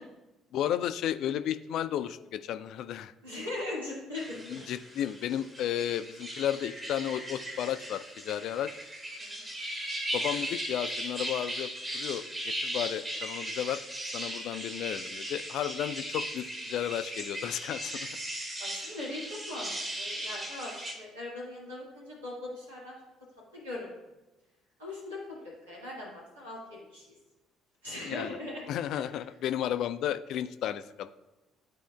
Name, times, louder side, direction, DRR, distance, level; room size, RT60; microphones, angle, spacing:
voice 1, 0.5-3.1 4.5-8.7 10.1-12.2 12.6-18.1 28.1-28.3 28.7-31.1, left 10 dB, 55° left, 11 dB, 0.3 m, -33 dB
voice 2, 3.2-4.6 9.2-9.5 18.6-19.7 20.0-23.0 23.5-23.9 24.8-27.1 27.8-28.6, left 2 dB, 80° right, -7 dB, 1.8 m, -40 dB
sound 1, 4.1-20.9, right 1 dB, 25° right, 1.6 m, -38 dB
12.5 x 4.4 x 2.2 m, 1.1 s
figure-of-eight pair, 50°, 0 cm